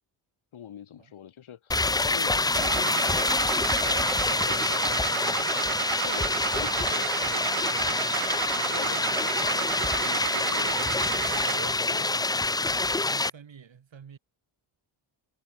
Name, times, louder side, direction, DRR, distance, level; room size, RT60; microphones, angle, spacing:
voice 1, 0.5-3.3 3.6-5.6 6.0-9.7 10.0-10.8 11.1-12.1, left 9 dB, 75° left, 3.7 m, -44 dB
sound 1, 1.7-13.3, left 3 dB, 10° left, 0.4 m, -26 dB
Car / Engine starting, 2.5-11.8, right 15 dB, 85° right, 0.9 m, -33 dB
voice 2, 11.9-12.3 12.6-14.2, right 7 dB, 65° right, 7.5 m, -50 dB
cardioid pair, 65°, 49 cm